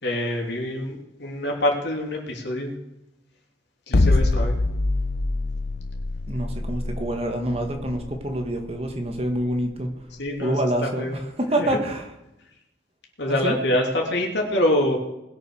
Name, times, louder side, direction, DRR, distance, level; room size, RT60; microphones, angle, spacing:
voice 1, 0.0-2.7 3.9-4.6 10.2-10.5 10.8-11.2 11.6-11.8 13.2-15.0, left 1 dB, 75° left, 1 dB, 3.1 m, -25 dB
sound 1, 3.9-10.1, left 2 dB, 55° left, 0.7 m, -24 dB
voice 2, 6.3-9.9 10.4-12.1 13.3-13.6, right 1 dB, 35° right, 3 dB, 1.8 m, -26 dB
20.5 x 6.9 x 6.4 m, 0.91 s
head